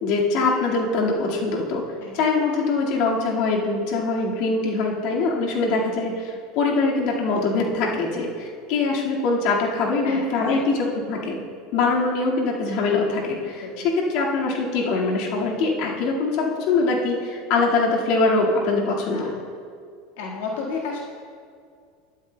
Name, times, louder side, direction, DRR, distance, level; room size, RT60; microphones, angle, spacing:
voice 1, 0.0-1.8 2.1-11.4 11.7-19.3, left 3 dB, 60° left, -2 dB, 1.8 m, -23 dB
voice 2, 10.0-10.8 13.5-13.9 19.1-19.4 20.2-21.0, left 4 dB, 80° left, -3 dB, 1.6 m, -33 dB
12.5 x 12.0 x 2.2 m, 2.2 s
supercardioid pair, 120°, 0 cm